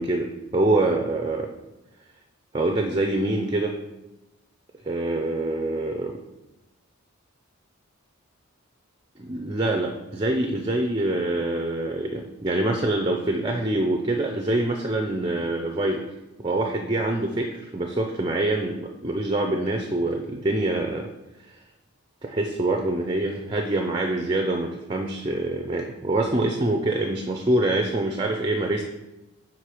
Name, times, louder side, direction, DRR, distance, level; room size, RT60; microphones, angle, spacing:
voice 1, 0.0-1.5 2.5-3.8 4.8-6.2 9.2-16.1 16.4-21.1 21.5-21.6 22.2-28.8, right 2 dB, 20° right, 3 dB, 0.4 m, -25 dB
5.9 x 4.5 x 4.9 m, 0.98 s
head